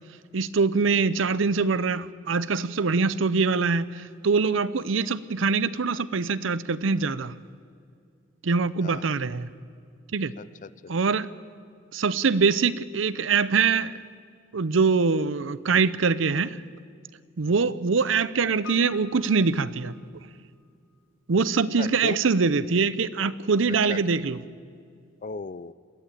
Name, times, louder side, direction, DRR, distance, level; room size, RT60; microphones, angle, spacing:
voice 1, 0.3-7.3 8.4-9.5 10.1-10.3 10.9-11.3 11.9-13.9 14.5-16.6 17.4-19.9 21.3-24.4, right 4 dB, 75° right, 17 dB, 0.7 m, -23 dB
voice 2, 10.4-10.9 17.5-17.7 21.8-22.2 23.9-24.0 25.2-25.7, left 4 dB, 40° left, 17 dB, 0.5 m, -37 dB
Piano, 18.6-20.7 20.9-21.0, left 7 dB, 75° left, 2.4 m, -47 dB
22.0 x 14.5 x 9.1 m, 2.3 s
head